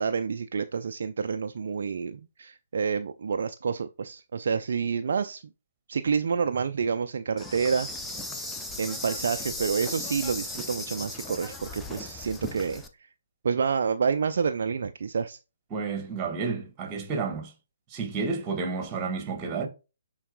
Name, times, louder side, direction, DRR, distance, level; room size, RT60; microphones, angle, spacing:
voice 1, 0.0-5.4 5.9-7.9 8.8-12.8 13.4-15.4, right 6 dB, 55° right, 0.4 m, -28 dB
Insect, 7.4-12.9, left 2 dB, 5° left, 0.7 m, -37 dB
voice 2, 15.7-17.5 17.9-19.7, right 4 dB, 20° right, 1.6 m, -31 dB
9.9 x 4.0 x 2.4 m
figure-of-eight pair, 130°, 0 cm